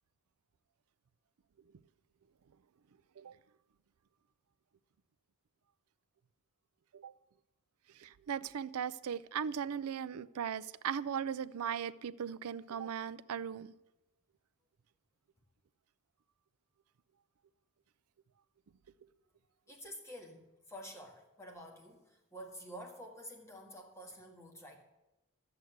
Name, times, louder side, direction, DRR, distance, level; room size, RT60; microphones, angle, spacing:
voice 1, 8.0-13.7, right 8 dB, 85° right, 17 dB, 0.4 m, -38 dB
voice 2, 19.7-24.8, equal, 15° left, 1 dB, 1.8 m, -49 dB
11.5 x 7.9 x 7.9 m, 0.98 s
head